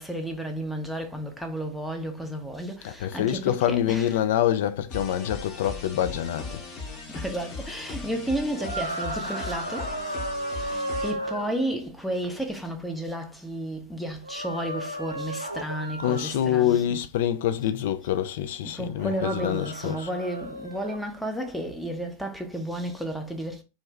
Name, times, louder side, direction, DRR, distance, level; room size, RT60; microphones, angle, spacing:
voice 1, 0.0-4.1 7.1-10.1 10.5-17.0 18.6-23.6, right 1 dB, ahead, 0.6 m, -32 dB
voice 2, 2.8-6.6 16.0-20.1, left 11 dB, 55° left, 0.3 m, -26 dB
sound 1, 4.9-11.1, left 3 dB, 30° left, 0.9 m, -38 dB
sound 2, 8.6-11.5 14.2-16.3 18.9-21.0, right 1 dB, 85° right, 0.4 m, -34 dB
2.5 x 2.2 x 3.2 m
figure-of-eight pair, 90°, 0 cm